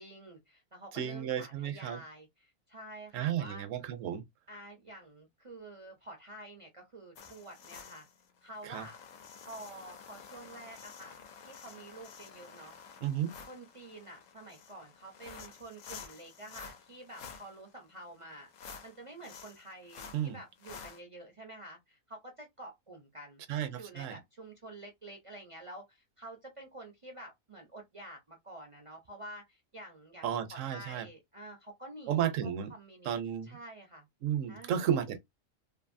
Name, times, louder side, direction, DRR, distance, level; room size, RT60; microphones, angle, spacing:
voice 1, 0.0-3.7 4.5-8.1 8.4-9.0 9.4-11.2 11.4-12.7 13.5-23.4 23.8-33.2 33.4-34.1 34.5-34.8, right 1 dB, 45° right, 0.4 m, -49 dB
voice 2, 0.9-2.0 3.1-4.2 8.6-8.8 13.0-13.3 20.1-20.4 23.5-24.2 30.2-31.1 32.1-32.7 33.1-33.6 34.2-35.2, right 9 dB, 75° right, 1.0 m, -33 dB
sound 1, 7.2-21.0, left 6 dB, 75° left, 1.0 m, -51 dB
2.6 x 2.5 x 2.5 m
omnidirectional pair, 1.4 m